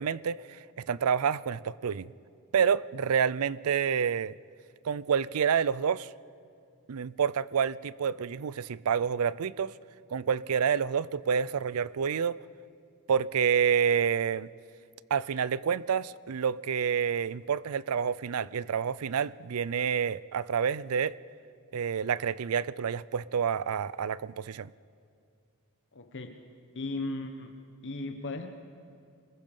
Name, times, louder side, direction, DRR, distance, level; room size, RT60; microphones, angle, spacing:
voice 1, 0.0-2.1 2.5-4.3 4.8-6.1 6.9-9.7 10.1-12.4 13.1-14.5 15.1-21.2 21.7-24.7, right 7 dB, 70° right, 20 dB, 0.4 m, -28 dB
voice 2, 25.9-26.4 26.7-27.5 27.8-28.5, left 2 dB, 55° left, 6 dB, 1.1 m, -36 dB
26.0 x 20.5 x 5.4 m, 2.3 s
head